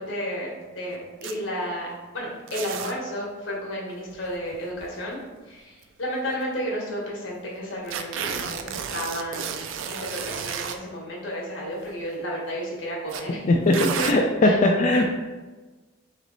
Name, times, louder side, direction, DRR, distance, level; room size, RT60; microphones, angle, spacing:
voice 1, 0.0-1.9 2.1-9.6 9.9-13.4 14.0-14.1 14.4-14.6, equal, 80° left, -3 dB, 1.2 m, -32 dB
sound 1, 1.2-1.3 2.5-2.9 4.1-5.1 5.8-5.9 6.3-6.4 7.9-10.8 11.7-12.0 13.1-13.2 13.7-14.1, right 7 dB, 80° right, 0.3 m, -32 dB
voice 2, 14.0-15.1, left 2 dB, 40° left, 0 dB, 0.3 m, -19 dB
3.2 x 2.9 x 4.0 m, 1.2 s
head